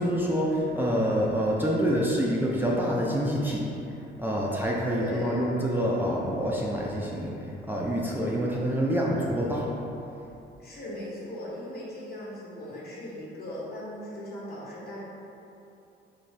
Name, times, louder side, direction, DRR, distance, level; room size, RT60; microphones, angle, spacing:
voice 1, 0.0-3.7 4.2-9.7, equal, 10° right, -5 dB, 0.4 m, -27 dB
voice 2, 4.8-5.4 10.6-15.0, left 1 dB, 50° left, -6 dB, 1.2 m, -38 dB
4.1 x 2.8 x 3.3 m, 2.9 s
cardioid pair, 90°, 20 cm